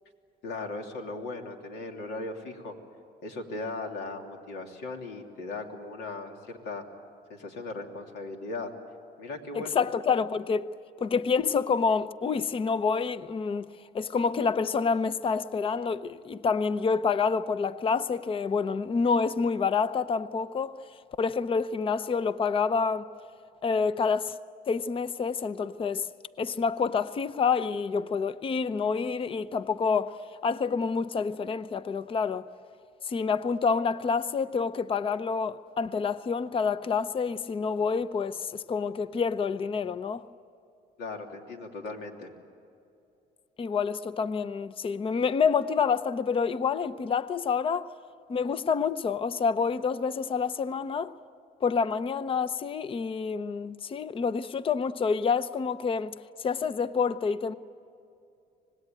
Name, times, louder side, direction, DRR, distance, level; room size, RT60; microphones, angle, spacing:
voice 1, 0.4-2.7 3.2-6.8 7.3-8.7 9.2-9.7 41.0-42.3, left 2 dB, 80° left, 3.1 m, -38 dB
voice 2, 9.5-10.7 11.0-13.7 13.9-20.8 21.2-23.1 23.6-24.3 24.7-26.1 26.4-30.2 30.4-32.5 33.1-40.2 43.6-47.9 48.3-51.1 51.6-57.5, left 5 dB, 30° left, 0.7 m, -28 dB
26.0 x 19.5 x 9.2 m
cardioid pair, 110°, 17 cm